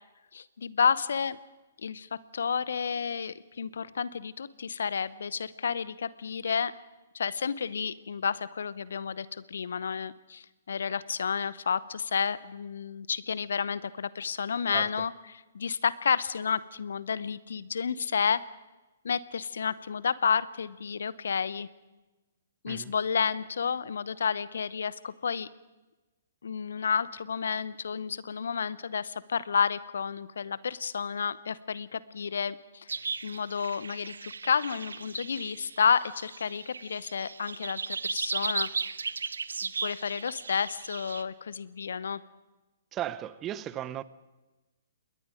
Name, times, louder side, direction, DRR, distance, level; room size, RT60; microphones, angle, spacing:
voice 1, 0.3-1.4 1.8-6.7 7.1-18.4 19.0-21.7 22.6-25.5 26.4-32.9 33.2-38.7 39.6-42.2, left 6 dB, 65° left, 0.8 m, -31 dB
sound 1, 32.9-41.2, right 5 dB, 75° right, 0.9 m, -36 dB
voice 2, 42.9-44.0, right 12 dB, 25° right, 0.8 m, -35 dB
28.0 x 21.5 x 5.2 m
figure-of-eight pair, 120°, 0 cm